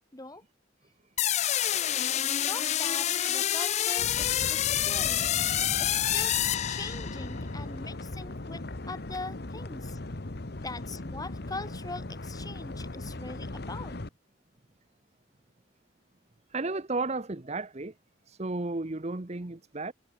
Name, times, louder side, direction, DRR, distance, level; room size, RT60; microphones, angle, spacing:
voice 1, 0.1-0.4 2.1-5.4 5.8-10.0 10.6-14.0, left 3 dB, 20° left, 2.0 m, -42 dB
sound 1, 1.2-7.3, left 11 dB, 35° left, 0.4 m, -27 dB
sound 2, 4.0-14.1, left 2 dB, 55° left, 1.2 m, -38 dB
voice 2, 4.7-5.2 16.5-17.9 18.2-19.9, right 3 dB, 35° right, 0.9 m, -34 dB
head